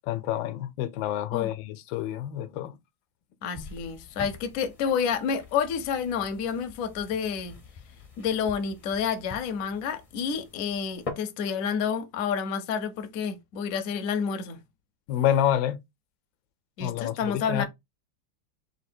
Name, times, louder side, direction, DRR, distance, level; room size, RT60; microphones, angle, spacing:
voice 1, 0.1-2.8 15.1-15.8 16.8-17.7, left 11 dB, 85° left, 1.3 m, -28 dB
voice 2, 3.4-7.6 8.2-14.6 16.8-17.7, left 7 dB, 65° left, 0.9 m, -29 dB
sound 1, 3.5-11.1, left 3 dB, 40° left, 0.5 m, -45 dB
3.7 x 2.8 x 4.2 m
omnidirectional pair, 2.0 m